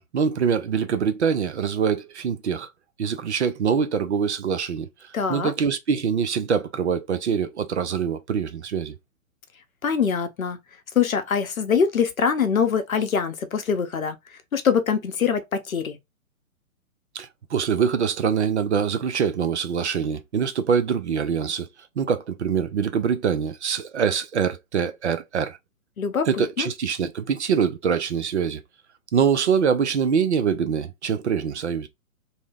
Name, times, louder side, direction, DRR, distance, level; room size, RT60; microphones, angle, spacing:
voice 1, 0.0-2.7 3.0-9.0 17.1-21.7 22.0-25.6 26.3-28.6 29.1-31.9, right 7 dB, 55° right, 0.5 m, -24 dB
voice 2, 5.1-5.5 9.8-10.6 10.9-14.2 14.5-16.0 26.0-26.7, left 6 dB, 70° left, 0.7 m, -23 dB
2.7 x 2.0 x 3.3 m
figure-of-eight pair, 125°, 43 cm